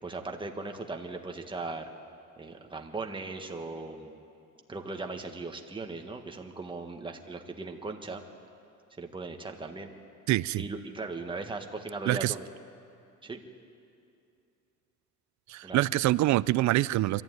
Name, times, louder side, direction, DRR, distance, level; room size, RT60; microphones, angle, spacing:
voice 1, 0.0-1.9 2.4-4.1 4.7-8.2 9.0-9.9 10.6-12.4 13.2-13.4 15.6-15.8, right 3 dB, 15° right, 3 dB, 1.6 m, -38 dB
voice 2, 10.3-10.7 12.1-12.3 15.5-17.2, right 16 dB, 65° right, 19 dB, 0.5 m, -25 dB
23.5 x 14.5 x 9.4 m, 2.6 s
cardioid pair, 125°, 31 cm